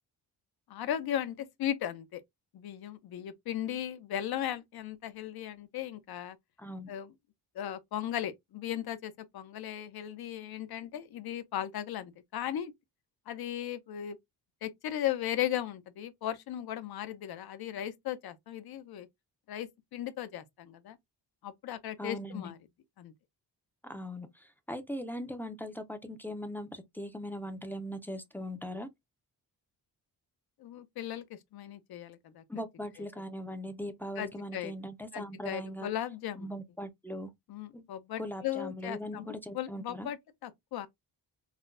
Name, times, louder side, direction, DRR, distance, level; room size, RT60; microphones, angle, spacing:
voice 1, 0.7-2.2 2.5-6.4 6.9-7.1 7.5-12.7 13.3-14.2 14.6-19.1 19.5-21.0 21.4-22.6 23.0-23.1 30.6-32.4 34.2-34.7 35.1-36.5 37.5-39.2 39.5-40.2 40.4-40.9, left 11 dB, 70° left, 0.7 m, -37 dB
voice 2, 6.6-6.9 22.0-22.5 23.8-28.9 32.5-35.9 36.4-37.3 37.7-37.8 38.2-40.1, equal, 5° left, 0.5 m, -40 dB
5.8 x 2.2 x 2.5 m
wide cardioid pair, 155°, 39 cm